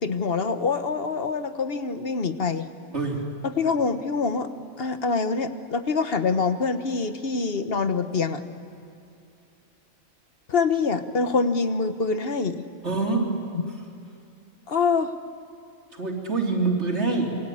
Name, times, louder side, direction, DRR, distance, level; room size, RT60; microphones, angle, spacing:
voice 1, 0.0-2.7 3.4-4.5 4.8-8.4 10.5-12.6 13.6-13.7 14.7-15.1, left 4 dB, 50° left, 9 dB, 1.3 m, -25 dB
voice 2, 2.9-3.3 12.8-13.3 15.9-17.3, right 3 dB, 55° right, 0 dB, 3.8 m, -25 dB
27.5 x 23.0 x 8.6 m, 2.5 s
omnidirectional pair, 1.4 m